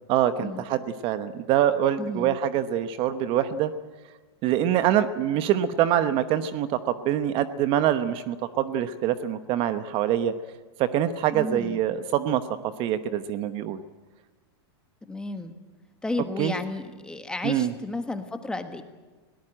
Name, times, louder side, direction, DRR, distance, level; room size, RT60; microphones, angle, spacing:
voice 1, 0.1-3.7 4.4-10.3 10.8-12.4 12.8-13.8 16.4-16.5 17.4-17.7, right 11 dB, 40° right, 12 dB, 1.0 m, -25 dB
voice 2, 2.0-2.4 11.3-11.8 15.1-15.6 16.0-18.8, left 2 dB, 5° left, 8 dB, 1.5 m, -32 dB
21.0 x 18.0 x 9.0 m, 1.3 s
supercardioid pair, 140°, 14 cm